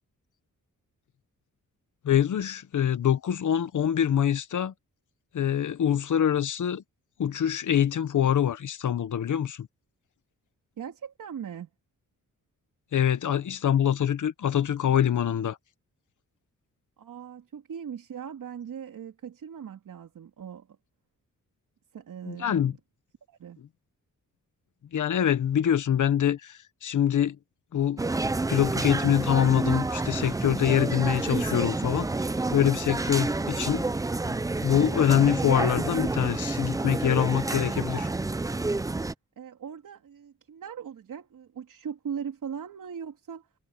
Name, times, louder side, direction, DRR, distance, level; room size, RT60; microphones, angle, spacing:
voice 1, 2.0-4.7 5.3-6.8 7.2-9.7 12.9-15.6 22.3-22.7 24.9-27.4 27.7-28.0 28.5-32.1 32.5-33.9 34.3-38.1, left 9 dB, 65° left, 1.2 m, -25 dB
voice 2, 10.8-11.7 17.0-20.8 21.9-22.8 23.3-23.6 39.4-43.5, right 7 dB, 75° right, 3.3 m, -39 dB
sound 1, 28.0-39.1, right 2 dB, 10° right, 0.4 m, -29 dB
wide cardioid pair, 155°, 32 cm